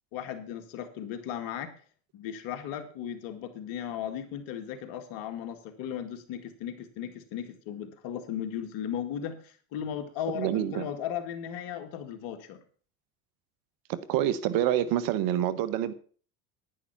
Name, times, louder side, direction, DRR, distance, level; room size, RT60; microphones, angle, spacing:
voice 1, 0.1-1.7 2.1-12.6, left 9 dB, 70° left, 8 dB, 2.1 m, -36 dB
voice 2, 10.3-10.9 13.9-15.9, right 11 dB, 65° right, 16 dB, 1.3 m, -27 dB
10.0 x 10.0 x 5.9 m, 0.42 s
supercardioid pair, 90°, 36 cm